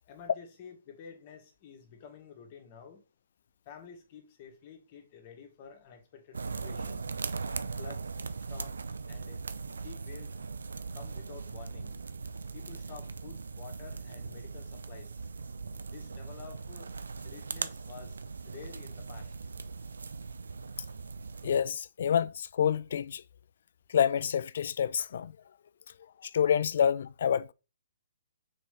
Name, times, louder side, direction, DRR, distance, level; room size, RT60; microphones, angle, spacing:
voice 1, 0.0-3.0 3.7-7.1 7.8-8.1 8.5-9.5 9.8-10.4 10.9-12.0 12.5-15.2 15.9-16.9 17.2-18.2 18.4-19.3, left 7 dB, 40° left, 1.9 m, -50 dB
sound 1, 6.3-21.6, right 4 dB, 85° right, 0.5 m, -39 dB
voice 2, 21.4-23.2 23.9-25.3 26.2-27.5, left 8 dB, 60° left, 0.3 m, -28 dB
6.0 x 4.6 x 3.4 m
hypercardioid pair, 140°, 0 cm